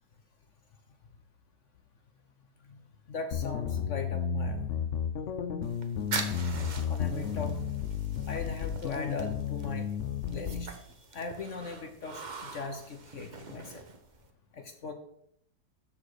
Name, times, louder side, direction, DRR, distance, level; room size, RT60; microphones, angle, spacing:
voice 1, 3.1-4.6 6.9-7.6 8.3-9.9 10.3-10.7 11.1-12.2 12.5-13.8 14.5-14.9, left 4 dB, 55° left, 7 dB, 0.9 m, -39 dB
sound 1, 3.3-10.7, left 7 dB, 85° left, 0.6 m, -33 dB
sound 2, 5.6-14.3, right 4 dB, 45° right, 0.6 m, -43 dB
13.0 x 4.5 x 4.8 m, 0.71 s
omnidirectional pair, 2.0 m